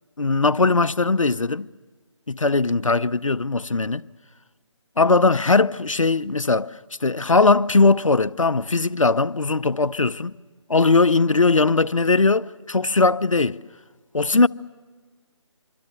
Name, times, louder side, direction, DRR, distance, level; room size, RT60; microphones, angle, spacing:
voice 1, 0.2-1.7 2.3-4.0 5.0-6.7 7.0-10.3 10.7-13.6 14.1-14.5, left 3 dB, 85° left, 0.7 m, -19 dB
26.0 x 25.0 x 6.9 m
figure-of-eight pair, 155°, 16 cm